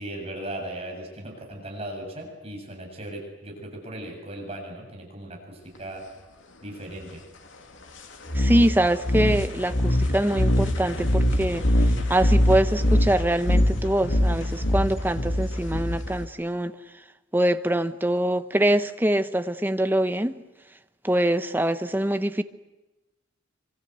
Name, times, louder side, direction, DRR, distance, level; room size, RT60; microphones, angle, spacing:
voice 1, 0.0-6.0 6.6-7.2, right 1 dB, 30° right, 7.3 m, -37 dB
sound 1, 8.3-16.3, left 1 dB, 75° left, 2.7 m, -23 dB
voice 2, 8.3-11.6 12.1-16.7 17.3-20.4 21.0-22.4, right 1 dB, 10° right, 1.0 m, -24 dB
26.0 x 25.5 x 8.1 m
head